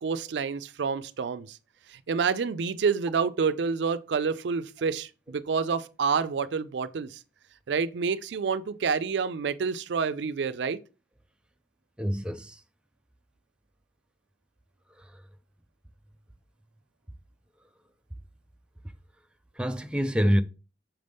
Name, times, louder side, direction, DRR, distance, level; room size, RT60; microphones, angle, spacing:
voice 1, 0.0-1.6 1.9-7.2 7.7-10.8, right 5 dB, 80° right, 0.4 m, -28 dB
voice 2, 12.0-12.6 15.0-15.2 19.6-20.4, equal, 5° right, 0.4 m, -26 dB
5.8 x 5.3 x 3.4 m
head